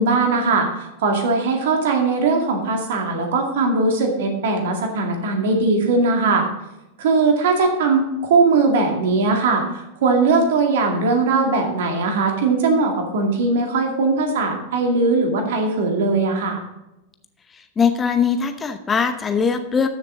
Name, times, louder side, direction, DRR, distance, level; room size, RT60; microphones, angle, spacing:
voice 1, 0.0-6.4 7.0-16.6, right 3 dB, 55° right, 3 dB, 2.2 m, -20 dB
voice 2, 17.8-19.9, left 6 dB, 20° left, 9 dB, 0.8 m, -20 dB
13.5 x 7.1 x 3.7 m, 0.94 s
figure-of-eight pair, 90°, 0 cm